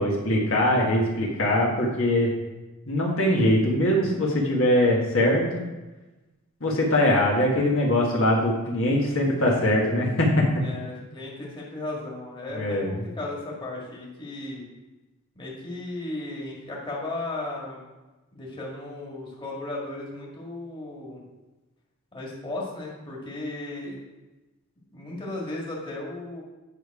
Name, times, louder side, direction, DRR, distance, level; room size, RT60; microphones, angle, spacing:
voice 1, 0.0-2.3 2.9-5.6 6.6-10.4 12.5-13.0, left 1 dB, 65° left, -2 dB, 1.6 m, -22 dB
voice 2, 10.6-14.6 15.4-17.8 18.3-21.2 22.1-24.0 24.9-26.4, left 2 dB, 25° left, -4 dB, 1.9 m, -35 dB
9.2 x 5.3 x 4.8 m, 1.1 s
head